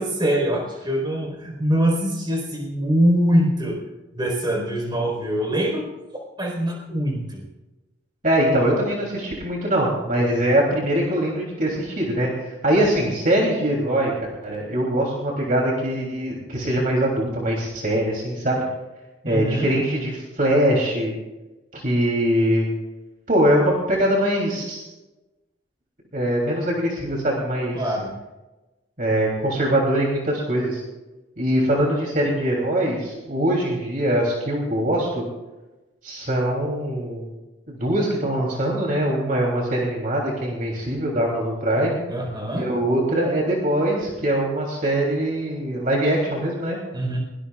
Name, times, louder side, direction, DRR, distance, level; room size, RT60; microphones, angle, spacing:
voice 1, 0.0-3.8 4.1-5.9 6.4-7.4 19.3-19.7 27.7-28.1 42.1-42.7 46.9-47.2, equal, 25° right, 1 dB, 4.5 m, -23 dB
voice 2, 8.2-12.3 12.6-14.1 14.4-18.6 19.2-21.1 21.7-22.7 23.3-24.8 26.1-27.8 29.0-30.8 31.4-35.2 36.0-37.3 37.7-42.0 42.5-46.8, right 1 dB, 45° right, -2 dB, 3.2 m, -22 dB
22.0 x 20.0 x 2.5 m, 1.1 s
head